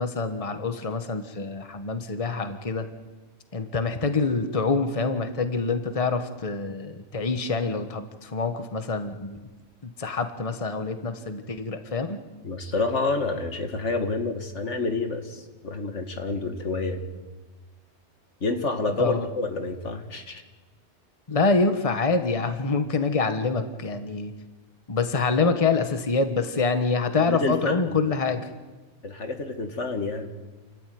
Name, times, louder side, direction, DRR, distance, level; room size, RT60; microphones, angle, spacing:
voice 1, 0.0-2.9 3.5-9.4 9.8-12.2 19.0-19.3 21.3-24.3 24.9-28.5, left 4 dB, 30° left, 8 dB, 1.4 m, -26 dB
voice 2, 12.4-17.1 18.4-20.4 27.2-28.0 29.0-30.3, left 3 dB, 85° left, 6 dB, 2.2 m, -28 dB
28.0 x 13.5 x 9.4 m, 1.2 s
omnidirectional pair, 1.2 m